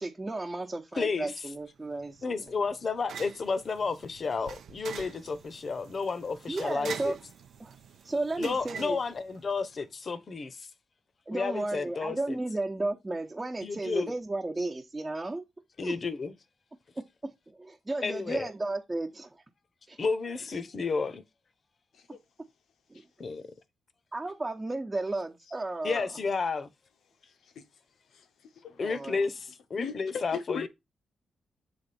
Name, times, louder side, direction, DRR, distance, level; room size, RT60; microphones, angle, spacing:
voice 1, 0.0-2.4 6.5-7.2 7.6-7.7 8.0-9.0 11.3-15.4 15.8-16.0 16.9-19.3 19.9-20.0 22.9-23.0 24.1-26.1 28.8-29.2, right 2 dB, 25° right, 1.0 m, -34 dB
voice 2, 1.0-1.5 2.2-7.2 8.4-10.7 11.3-12.4 13.6-14.1 15.8-16.3 18.0-18.5 20.0-21.2 23.2-23.5 25.8-26.7 28.8-30.7, left 4 dB, 50° left, 0.9 m, -32 dB
sound 1, 1.5-9.9, right 7 dB, 75° right, 0.7 m, -46 dB
voice 3, 28.1-29.0 29.8-30.7, left 6 dB, 80° left, 0.9 m, -38 dB
7.7 x 3.5 x 4.2 m
cardioid pair, 65°, 0 cm